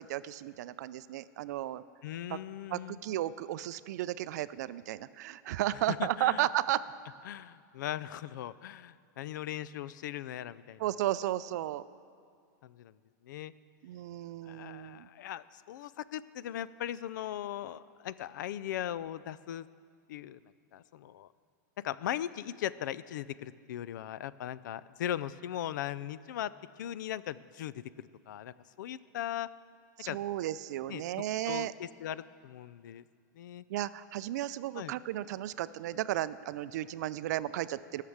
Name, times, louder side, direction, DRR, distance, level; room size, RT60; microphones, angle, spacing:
voice 1, 0.0-1.8 2.3-2.4 2.7-6.8 10.8-11.8 13.8-15.1 30.0-31.7 33.7-38.0, right 14 dB, 60° right, 15 dB, 0.4 m, -34 dB
voice 2, 2.0-3.0 5.9-6.5 7.3-10.8 12.6-12.9 13.2-13.5 14.4-19.7 20.1-20.4 20.7-21.3 21.8-29.5 30.1-30.2 30.9-31.0 31.5-33.0 33.4-33.6 34.8-34.9, left 11 dB, 75° left, 17 dB, 0.4 m, -39 dB
14.5 x 6.6 x 7.2 m, 2.2 s
supercardioid pair, 160°, 10 cm